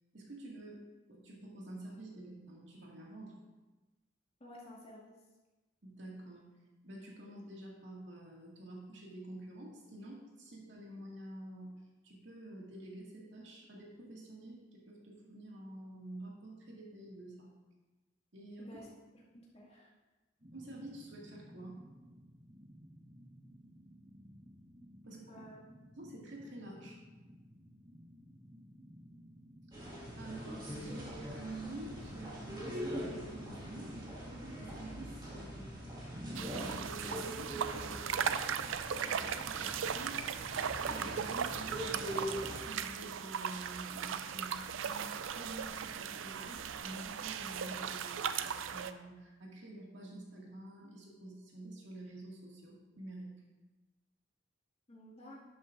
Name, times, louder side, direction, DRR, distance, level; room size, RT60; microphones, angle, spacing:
voice 1, 0.1-0.8 1.1-3.4 5.8-6.4 6.8-17.5 18.3-18.8 20.5-21.8 25.0-25.4 26.0-27.0 30.2-35.7 35.9-36.0 36.3-38.5 39.0-40.2 40.9-53.4, right 1 dB, 65° right, -3 dB, 2.1 m, -49 dB
voice 2, 4.4-5.2 18.6-19.9 25.1-25.6 54.9-55.4, equal, 30° left, -5 dB, 2.2 m, -53 dB
sound 1, 20.4-36.9, equal, 35° right, 1.1 m, -55 dB
sound 2, 29.7-42.6, equal, 20° right, 1.9 m, -43 dB
sound 3, 36.3-48.9, right 7 dB, 80° right, 0.4 m, -38 dB
11.5 x 8.6 x 2.6 m, 1.1 s
head